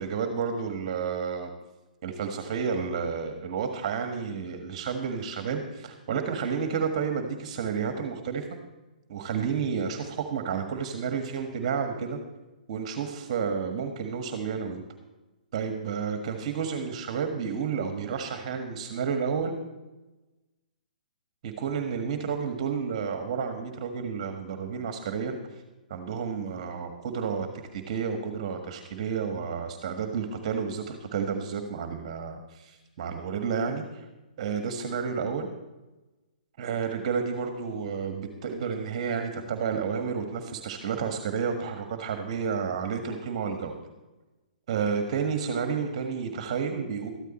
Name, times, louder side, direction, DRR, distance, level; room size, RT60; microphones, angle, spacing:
voice 1, 0.0-1.5 2.0-8.4 9.1-12.2 12.7-14.8 15.5-19.5 21.4-25.4 25.9-27.5 27.7-33.8 34.4-35.5 36.6-43.8 44.7-47.1, right 6 dB, 45° right, 6 dB, 1.5 m, -31 dB
13.5 x 12.5 x 4.2 m, 1.1 s
figure-of-eight pair, 125°, 5 cm